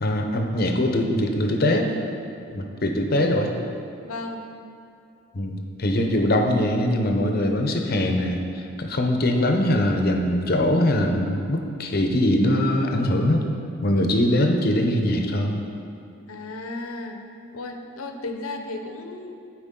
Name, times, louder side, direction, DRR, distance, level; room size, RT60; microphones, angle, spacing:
voice 1, 0.0-1.9 2.5-3.5 5.3-13.5 13.8-15.7, left 1 dB, 45° left, 4 dB, 0.7 m, -22 dB
voice 2, 4.0-4.5 16.3-17.2 17.5-19.4, left 2 dB, 85° left, 5 dB, 0.7 m, -34 dB
12.0 x 4.8 x 3.7 m, 2.5 s
head